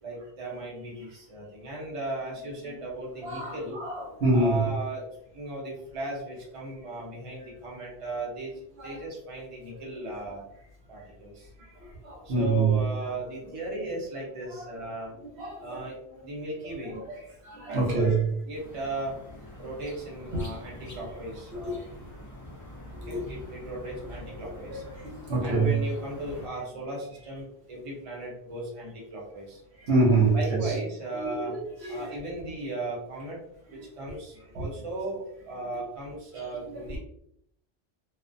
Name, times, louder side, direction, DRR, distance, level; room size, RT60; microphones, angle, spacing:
voice 1, 0.0-3.8 4.3-5.1 5.3-10.4 10.9-11.5 12.2-15.1 15.6-16.0 16.2-16.9 17.7-18.1 18.4-19.2 19.6-21.9 23.1-24.8 25.4-29.6 30.3-31.6 31.9-33.4 33.7-37.0, right 1 dB, 35° right, 0.8 m, -37 dB
voice 2, 3.2-4.6 8.8-9.0 9.7-9.8 11.6-12.8 14.6-14.8 15.2-15.9 16.6-18.2 20.3-20.5 24.7-25.8 29.8-30.7 31.1-32.3 33.7-33.8 34.6-34.7 36.3-36.4 36.7-37.0, right 3 dB, 85° right, 1.0 m, -27 dB
sound 1, 18.5-26.5, left 1 dB, 25° left, 0.4 m, -45 dB
2.3 x 2.1 x 2.5 m
omnidirectional pair, 1.1 m